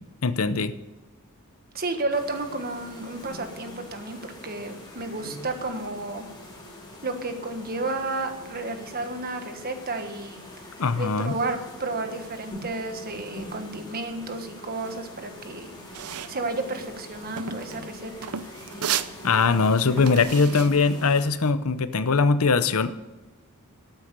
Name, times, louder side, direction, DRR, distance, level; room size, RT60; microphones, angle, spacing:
voice 1, 0.2-0.7 10.8-11.3 19.2-22.9, left 4 dB, 70° left, 13 dB, 0.7 m, -21 dB
voice 2, 1.7-6.3 7.0-10.4 11.0-15.7 16.3-18.1, right 2 dB, 45° right, 7 dB, 1.5 m, -32 dB
sound 1, 2.1-21.3, left 1 dB, 20° left, 3.2 m, -44 dB
sound 2, 15.9-21.5, right 8 dB, 75° right, 0.6 m, -34 dB
13.0 x 9.1 x 6.8 m, 1.1 s
head